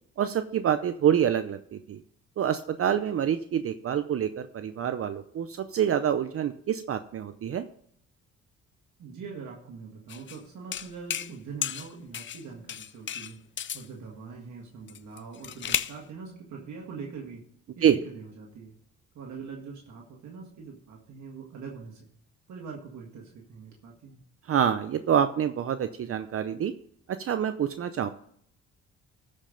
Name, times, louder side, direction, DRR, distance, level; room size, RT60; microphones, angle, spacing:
voice 1, 0.2-2.0 2.4-7.7 17.8-18.0 24.5-26.7 27.1-28.1, right 9 dB, 50° right, 10 dB, 0.6 m, -26 dB
voice 2, 9.0-13.5 13.7-17.4 17.8-18.8 19.2-22.1 22.5-24.2, right 5 dB, 70° right, -1 dB, 1.8 m, -43 dB
sound 1, 10.1-10.4 10.7-11.3 11.6-12.4 12.7-13.9 14.9-16.0, left 9 dB, 40° left, 0.5 m, -33 dB
13.5 x 5.4 x 5.1 m, 0.66 s
cardioid pair, 90°, 30 cm